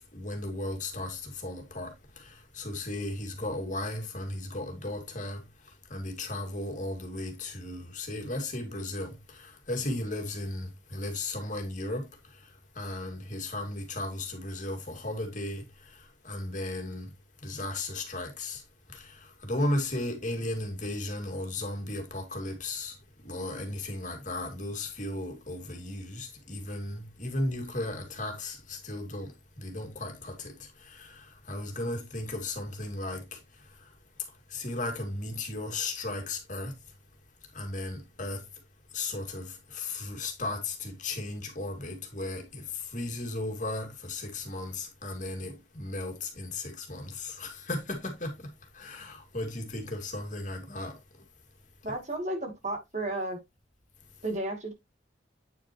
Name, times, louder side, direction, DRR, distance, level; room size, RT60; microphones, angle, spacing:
voice 1, 0.1-5.4 5.9-12.1 12.7-17.1 17.4-18.6 18.9-23.0 23.2-29.3 29.6-33.4 34.5-36.7 37.5-38.4 38.9-48.5 48.7-51.0, left 2 dB, 45° left, 2.3 m, -35 dB
voice 2, 51.8-53.4 54.2-54.7, right 1 dB, 40° right, 2.4 m, -33 dB
9.1 x 6.2 x 2.9 m
head